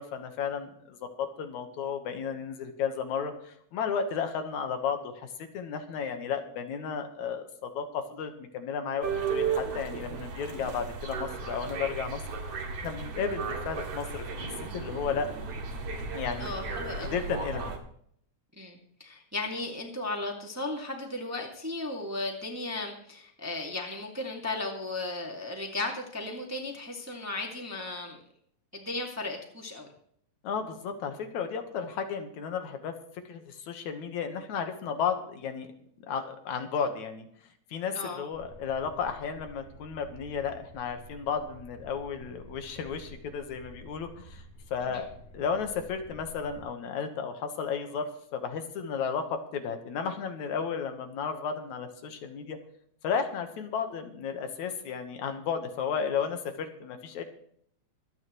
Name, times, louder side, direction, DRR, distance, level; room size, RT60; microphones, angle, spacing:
voice 1, 0.0-5.3 5.5-12.2 12.8-14.5 14.7-15.3 16.1-16.5 17.0-17.7 30.4-32.9 33.3-35.7 36.1-37.3 37.7-44.4 44.7-45.1 45.3-52.6 53.0-57.2, left 6 dB, 75° left, 6 dB, 2.7 m, -33 dB
sound 1, 9.0-17.8, right 5 dB, 60° right, 2.8 m, -35 dB
voice 2, 16.4-17.2 18.6-28.2 28.7-29.9 37.9-38.2 44.9-45.0, left 2 dB, 5° right, 1 dB, 1.6 m, -35 dB
sound 2, 38.3-46.6, right 1 dB, 55° left, 3.6 m, -51 dB
25.0 x 9.2 x 3.1 m, 0.66 s
omnidirectional pair, 3.4 m